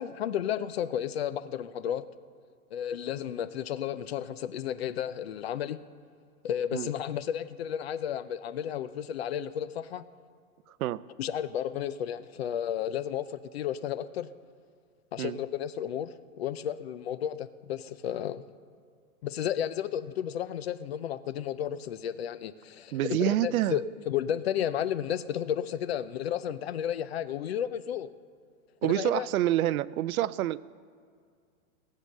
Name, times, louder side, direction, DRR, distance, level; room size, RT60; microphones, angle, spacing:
voice 1, 0.0-2.1 2.7-5.8 6.4-10.1 11.2-14.3 15.1-18.4 19.2-28.1 28.8-29.3, left 10 dB, 45° left, 15 dB, 0.5 m, -32 dB
voice 2, 22.9-23.8 28.8-30.6, right 13 dB, 70° right, 19 dB, 0.5 m, -27 dB
18.0 x 7.5 x 6.5 m, 2.1 s
hypercardioid pair, 160°, 44 cm